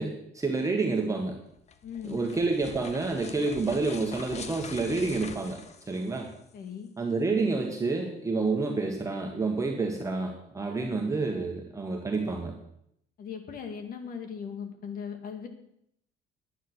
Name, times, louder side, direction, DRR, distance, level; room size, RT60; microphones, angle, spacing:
voice 1, 0.0-1.4 2.0-5.6 5.9-6.3 7.0-12.5, right 3 dB, 20° right, 1 dB, 1.6 m, -29 dB
sound 1, 1.6-6.5, left 6 dB, 40° left, 1.0 m, -45 dB
voice 2, 1.8-2.2 6.5-6.9 13.2-15.5, left 7 dB, 55° left, 7 dB, 2.1 m, -38 dB
10.5 x 9.3 x 6.3 m, 0.74 s
cardioid pair, 110°, 17 cm